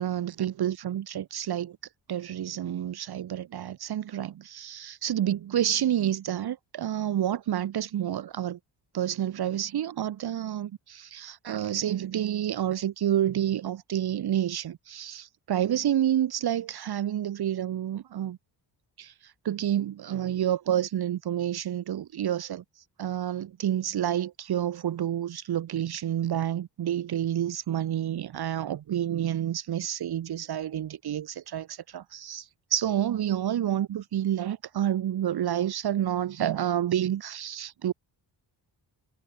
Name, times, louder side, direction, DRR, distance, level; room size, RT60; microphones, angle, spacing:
voice 1, 0.0-1.8 2.1-8.6 8.9-18.4 19.0-19.1 19.4-22.6 23.0-32.4 32.7-37.9, right 11 dB, 60° right, 1.6 m, -29 dB
cardioid pair, 145°, 44 cm